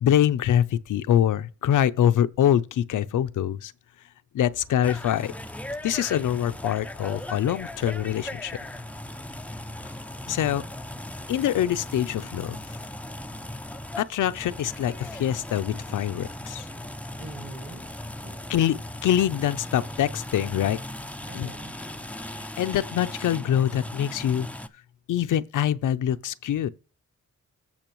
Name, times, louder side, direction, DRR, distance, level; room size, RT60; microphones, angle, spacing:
voice 1, 0.0-3.7 4.3-5.3 5.8-8.5 10.3-10.6 11.3-12.6 14.0-16.7 18.5-18.8 19.0-20.8 21.3-21.5 22.6-24.5 25.1-26.7, left 10 dB, 85° left, 0.5 m, -24 dB
sound 1, 4.4-22.5, right 1 dB, 80° right, 2.8 m, -53 dB
sound 2, 4.8-24.7, left 1 dB, 5° left, 0.3 m, -38 dB
voice 2, 10.3-10.6 17.2-18.0 18.2-18.4 21.3-21.8, right 3 dB, 40° right, 1.9 m, -44 dB
15.5 x 5.5 x 3.0 m
wide cardioid pair, 150°, 30 cm